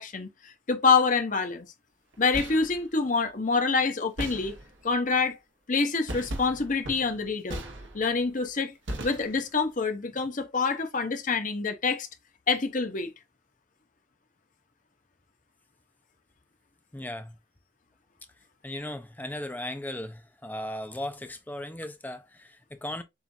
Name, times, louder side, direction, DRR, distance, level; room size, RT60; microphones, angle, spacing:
voice 1, 0.0-1.7 2.2-4.5 4.8-5.4 5.7-7.6 7.9-8.7 9.0-12.1 12.5-13.1, left 4 dB, 45° left, 0.8 m, -26 dB
sound 1, 2.1-2.8 4.2-4.9 6.1-8.2 8.9-9.6, right 1 dB, 85° right, 1.3 m, -38 dB
voice 2, 16.9-17.4 18.6-23.0, left 1 dB, 10° left, 0.5 m, -37 dB
7.2 x 2.5 x 2.6 m
head